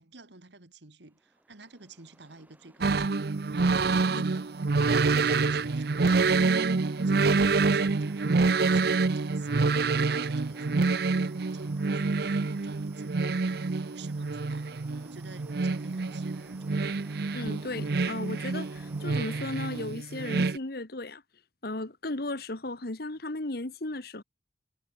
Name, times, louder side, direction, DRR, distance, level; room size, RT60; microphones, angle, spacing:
voice 1, 0.0-3.2 3.8-14.7 15.0-17.1, right 3 dB, 80° right, 2.3 m, -51 dB
sound 1, 1.1-19.8, right 1 dB, 10° right, 2.2 m, -57 dB
sound 2, 2.8-20.6, right 4 dB, 60° right, 0.6 m, -27 dB
voice 2, 17.3-21.2 21.6-24.2, left 2 dB, 60° left, 1.7 m, -35 dB
head